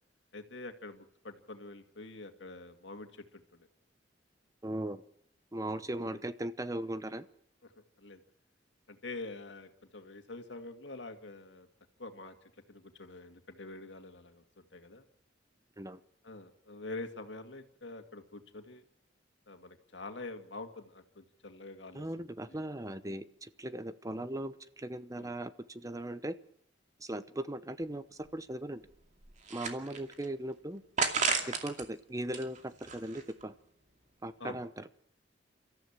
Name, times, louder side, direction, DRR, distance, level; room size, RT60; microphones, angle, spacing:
voice 1, 0.3-3.7 5.6-6.2 7.6-8.2 8.9-11.7 12.0-15.1 16.2-18.8 19.5-22.6 25.1-25.3 34.4-34.6, left 2 dB, 75° left, 6 dB, 2.3 m, -46 dB
voice 2, 4.6-5.0 5.5-7.3 15.8-16.0 21.9-26.3 27.0-28.8 29.5-30.8 31.5-33.5 34.2-34.8, right 1 dB, 20° right, 13 dB, 0.8 m, -38 dB
sound 1, 27.8-27.9 28.3-28.4 28.9-30.3 31.0-31.8 32.2-33.4, right 5 dB, 40° right, 2.5 m, -33 dB
30.0 x 14.0 x 7.4 m, 0.73 s
head